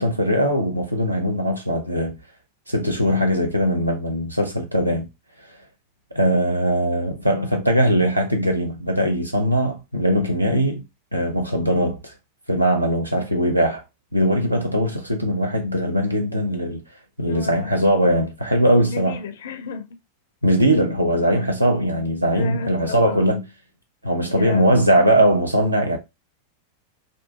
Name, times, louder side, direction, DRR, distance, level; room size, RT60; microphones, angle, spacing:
voice 1, 0.0-2.2 2.7-5.1 6.1-10.8 11.1-12.1 12.5-13.8 14.1-16.8 17.2-19.2 20.4-23.4 24.0-26.0, equal, 85° right, 0.7 m, -20 dB
voice 2, 13.1-13.5 17.2-17.9 18.9-19.9 22.3-23.3 24.3-24.8, left 6 dB, 60° left, 0.5 m, -34 dB
2.6 x 2.2 x 2.8 m
figure-of-eight pair, 90°, 0 cm